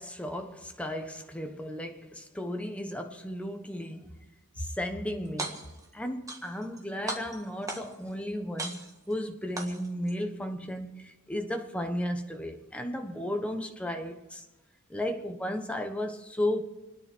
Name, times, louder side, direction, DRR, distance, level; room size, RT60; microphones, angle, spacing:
voice 1, 0.0-4.2 4.6-14.4 14.9-16.6, left 1 dB, 5° left, 1.3 m, -34 dB
sound 1, 5.2-5.9 6.3-6.8 7.1-8.1 8.6-9.1 9.6-10.1, right 2 dB, 15° right, 1.7 m, -37 dB
29.5 x 10.0 x 4.6 m
head